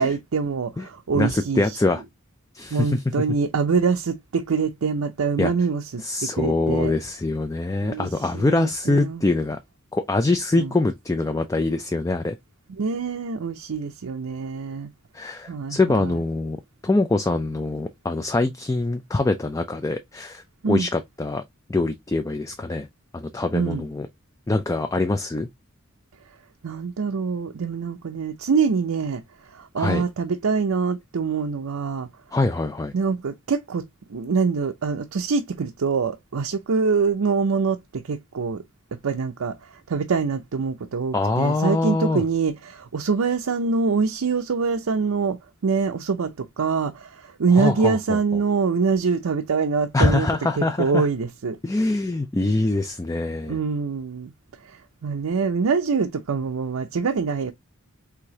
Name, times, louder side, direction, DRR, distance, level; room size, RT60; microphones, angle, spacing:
voice 1, 0.0-1.8 2.7-6.9 7.8-8.1 8.3-9.3 10.6-10.7 12.8-14.9 15.5-16.2 20.6-20.9 23.5-23.8 26.6-29.2 29.5-32.1 32.9-38.6 38.9-50.3 50.6-51.6 53.5-54.3 54.6-57.5, right 5 dB, 75° right, 0.5 m, -24 dB
voice 2, 1.1-2.0 2.5-3.0 5.4-5.5 6.0-9.6 9.9-12.4 15.1-16.6 16.8-21.4 21.7-22.9 23.1-24.1 24.5-25.5 29.8-30.0 32.3-32.9 41.1-42.2 47.6-48.2 49.9-51.1 51.6-53.6, left 2 dB, 15° left, 0.3 m, -24 dB
4.9 x 3.5 x 2.7 m
head